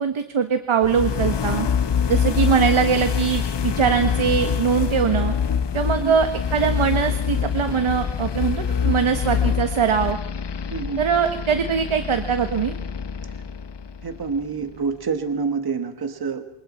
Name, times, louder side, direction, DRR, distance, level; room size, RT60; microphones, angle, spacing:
voice 1, 0.0-1.7 2.1-5.3 5.7-10.2 11.0-12.7, right 6 dB, 85° right, 7 dB, 1.5 m, -22 dB
sound 1, 0.8-14.7, left 7 dB, 60° left, 1.0 m, -25 dB
voice 2, 5.8-6.2 10.7-11.0 13.3-13.4 14.0-16.4, right 5 dB, 50° right, 6 dB, 1.6 m, -27 dB
27.5 x 25.0 x 4.4 m, 0.78 s
wide cardioid pair, 155°, 48 cm